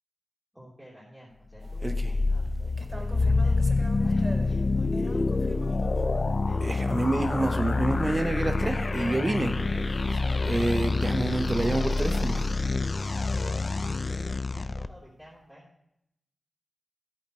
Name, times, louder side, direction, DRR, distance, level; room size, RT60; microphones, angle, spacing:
voice 1, 0.5-3.5 3.9-7.4 7.7-8.8 9.2-11.4 11.7-15.6, equal, ahead, -9 dB, 3.4 m, -50 dB
sound 1, 1.6-14.9, left 3 dB, 35° left, 0.4 m, -27 dB
sound 2, 1.8-2.3 2.8-6.3 6.6-12.5, right 2 dB, 25° right, 0.7 m, -30 dB
13.5 x 9.0 x 3.1 m, 0.78 s
wide cardioid pair, 145°, 0 cm